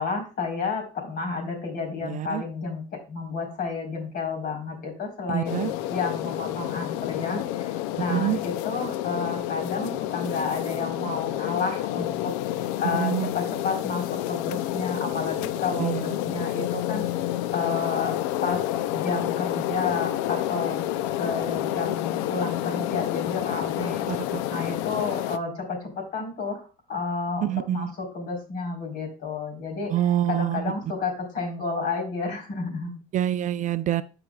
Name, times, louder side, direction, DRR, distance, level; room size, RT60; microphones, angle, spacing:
voice 1, 0.0-17.3 17.5-18.1 18.4-18.7 18.9-20.8 21.2-24.1 24.5-29.9 30.3-32.9, left 4 dB, 55° left, 2 dB, 4.0 m, -31 dB
voice 2, 2.0-2.4 5.3-5.7 8.1-8.4 12.9-13.3 15.8-16.1 24.1-24.4 27.4-27.9 29.9-30.7 33.1-34.0, right 12 dB, 45° right, 14 dB, 0.4 m, -26 dB
sound 1, 5.4-25.4, left 13 dB, 75° left, 0.5 m, -29 dB
13.5 x 5.0 x 2.3 m, 0.34 s
supercardioid pair, 85°, 18 cm